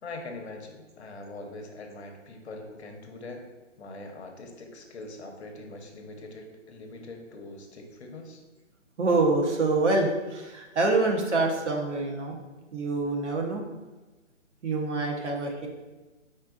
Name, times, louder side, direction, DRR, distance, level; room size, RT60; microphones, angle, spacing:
voice 1, 0.0-3.4 3.8-8.4, left 2 dB, 60° left, 3 dB, 0.9 m, -42 dB
voice 2, 9.0-12.3 12.7-13.6 14.6-15.7, right 3 dB, 65° right, 1 dB, 1.1 m, -26 dB
4.3 x 3.9 x 2.5 m, 1.2 s
hypercardioid pair, 160°, 38 cm